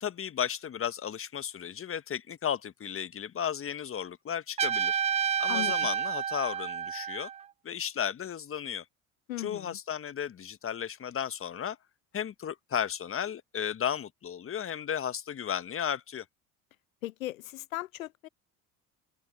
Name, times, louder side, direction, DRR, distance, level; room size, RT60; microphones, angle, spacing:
voice 1, 0.0-5.0 5.4-7.3 7.6-8.8 9.4-11.8 12.1-16.2, left 9 dB, 35° left, 1.4 m, -34 dB
Trumpet, 4.6-7.4, right 7 dB, 20° right, 0.3 m, -29 dB
voice 2, 9.3-9.8 17.0-18.3, left 15 dB, 85° left, 0.9 m, -37 dB
open air
hypercardioid pair, 70°, 40 cm